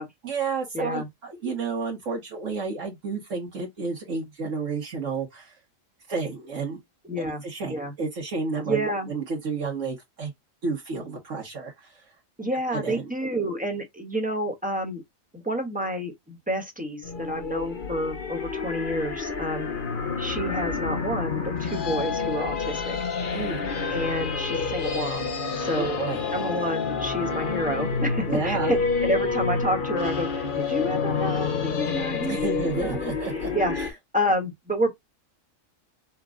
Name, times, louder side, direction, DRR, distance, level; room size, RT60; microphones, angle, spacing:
voice 1, 0.2-5.6 6.1-6.8 7.2-10.3 10.6-11.9 12.7-13.0 23.3-23.6 25.7-26.2 28.3-28.8 32.2-33.5 33.7-33.9, right 4 dB, 70° right, 1.6 m, -31 dB
voice 2, 0.7-1.1 7.0-7.4 7.7-7.9 8.6-9.1 12.4-15.0 15.3-19.7 20.2-23.1 23.9-26.0 26.3-34.9, equal, 5° right, 1.1 m, -29 dB
cat axe, 17.0-33.9, left 5 dB, 45° left, 0.9 m, -29 dB
5.9 x 2.3 x 3.7 m
omnidirectional pair, 1.4 m